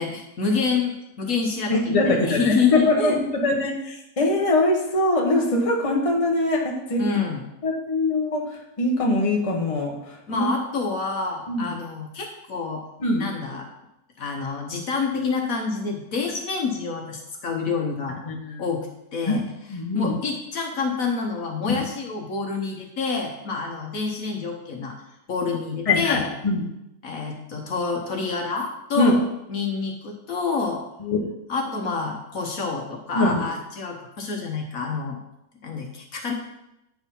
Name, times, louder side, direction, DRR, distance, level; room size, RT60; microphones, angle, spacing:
voice 1, 0.0-3.2 7.0-7.4 10.3-12.8 13.2-13.7 14.2-18.2 18.6-18.9 19.1-19.4 19.9-24.9 25.3-26.3 27.0-29.2 29.5-30.8 31.5-35.2 35.6-36.3, left 4 dB, 60° left, 1 dB, 1.5 m, -27 dB
voice 2, 1.7-3.1 3.4-7.0 7.6-8.4 8.8-10.5 11.5-11.8 13.0-13.2 18.3-18.6 19.3-19.4 19.7-20.1 21.6-21.8 25.9-26.2 26.4-26.7 29.0-29.1 31.0-31.2 33.1-33.5, left 2 dB, 25° left, -1 dB, 1.3 m, -22 dB
9.0 x 4.8 x 5.4 m, 0.87 s
omnidirectional pair, 1.7 m